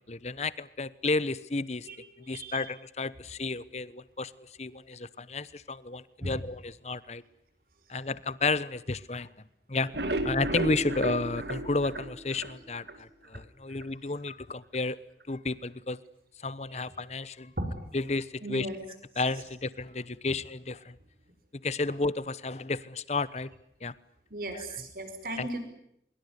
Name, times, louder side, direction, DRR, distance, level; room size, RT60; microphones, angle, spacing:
voice 1, 0.1-1.9 2.3-7.2 7.9-9.3 9.7-9.9 10.2-15.0 15.3-16.0 16.4-17.5 17.9-18.7 19.2-21.0 21.6-23.5 23.8-23.9 24.5-24.7 25.4-25.5, left 3 dB, 40° left, 18 dB, 1.0 m, -32 dB
voice 2, 1.9-2.6 6.2-6.4 16.7-16.9 17.6-17.7 18.4-18.8 24.3-25.6, right 1 dB, 55° right, 8 dB, 5.6 m, -36 dB
sound 1, 9.7-13.0 13.3-13.4 13.8-13.9 14.3-14.4, right 1 dB, 70° right, 2.7 m, -33 dB
24.0 x 23.0 x 9.8 m, 0.77 s
head